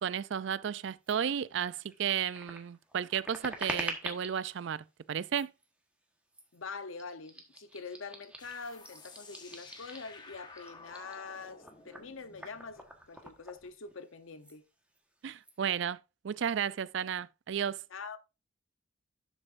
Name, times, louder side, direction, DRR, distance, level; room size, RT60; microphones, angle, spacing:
voice 1, 0.0-5.5 15.2-16.0 16.2-17.8, right 8 dB, 60° right, 0.4 m, -33 dB
sound 1, 1.0-1.2 1.6-4.5 5.2-5.6 6.3-6.6 6.9-10.2 10.5-14.1 14.4-14.6 14.9-15.5, right 1 dB, 5° right, 1.3 m, -45 dB
voice 2, 6.5-14.6 17.9-18.2, left 4 dB, 80° left, 0.8 m, -44 dB
sound 2, 8.4-13.7, left 3 dB, 20° left, 1.3 m, -53 dB
11.5 x 6.6 x 2.5 m
head